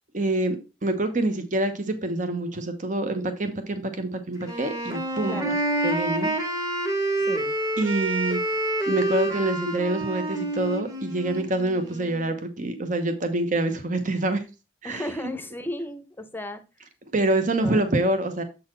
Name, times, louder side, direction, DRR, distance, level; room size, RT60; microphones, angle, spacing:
voice 1, 0.1-0.6 0.8-5.5 5.8-6.3 7.8-8.4 8.9-14.4 14.8-15.1 17.1-18.4, right 2 dB, 45° right, 8 dB, 1.0 m, -26 dB
Wind instrument woodwind instrument, 4.4-12.3, right 1 dB, 20° right, 1.3 m, -28 dB
voice 2, 5.3-5.6 7.2-7.6 14.8-16.6 17.6-17.8, left 1 dB, 10° left, 9 dB, 0.7 m, -34 dB
7.7 x 4.0 x 4.4 m, 0.30 s
head